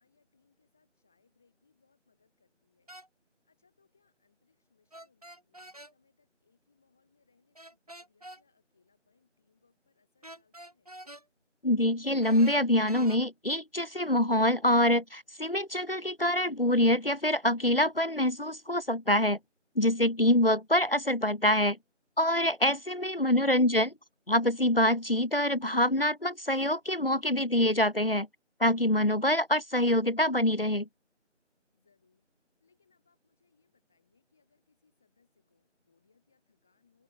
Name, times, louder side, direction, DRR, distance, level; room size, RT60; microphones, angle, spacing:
voice 1, 0.0-11.0 23.3-23.9 31.7-32.3 32.6-37.0, left 5 dB, ahead, 5.6 m, -72 dB
sound 1, 2.9-3.1 4.9-5.9 7.6-8.4 10.2-11.2 12.2-13.2, right 1 dB, 30° right, 7.1 m, -47 dB
voice 2, 11.6-19.4 19.8-21.8 22.2-23.9 24.3-28.3 28.6-30.9, left 1 dB, 50° left, 0.9 m, -25 dB
figure-of-eight pair, 175°, 37 cm